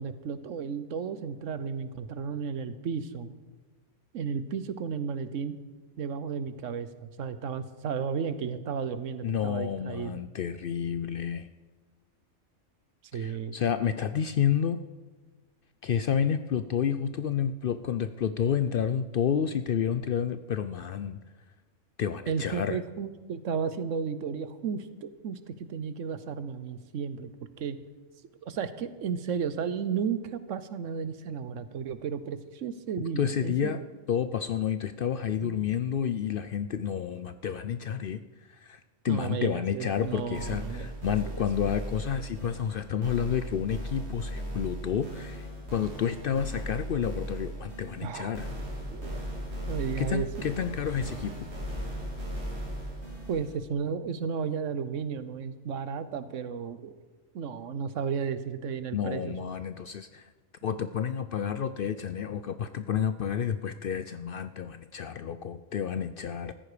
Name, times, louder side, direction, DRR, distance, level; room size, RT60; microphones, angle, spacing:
voice 1, 0.0-3.3 4.1-5.5 6.0-10.2 13.1-13.6 22.3-27.3 27.6-27.8 28.4-33.8 35.4-35.7 39.1-40.9 41.3-41.4 48.0-48.3 48.9-49.2 49.7-50.3 53.3-56.9 57.3-59.4, right 6 dB, 75° right, 13 dB, 1.2 m, -33 dB
voice 2, 9.2-11.5 13.1-14.8 15.8-21.2 22.0-22.8 33.2-33.8 34.1-38.2 38.6-38.8 39.0-48.5 50.0-51.3 58.9-60.3 60.6-66.5, left 8 dB, 60° left, 11 dB, 0.6 m, -30 dB
sound 1, 39.9-53.6, equal, 55° right, 3.1 m, -37 dB
14.5 x 14.0 x 5.0 m, 1.3 s
omnidirectional pair, 1.3 m